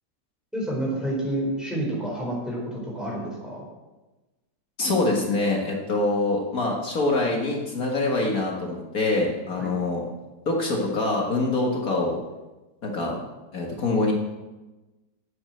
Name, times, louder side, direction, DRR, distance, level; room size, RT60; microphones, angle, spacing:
voice 1, 0.5-3.6 9.6-9.7, right 1 dB, ahead, -4 dB, 4.6 m, -29 dB
voice 2, 4.8-10.1 10.5-12.2 12.8-13.2 13.5-14.1, left 2 dB, 55° left, 0 dB, 2.0 m, -25 dB
9.0 x 8.5 x 7.8 m, 1.1 s
omnidirectional pair, 1.9 m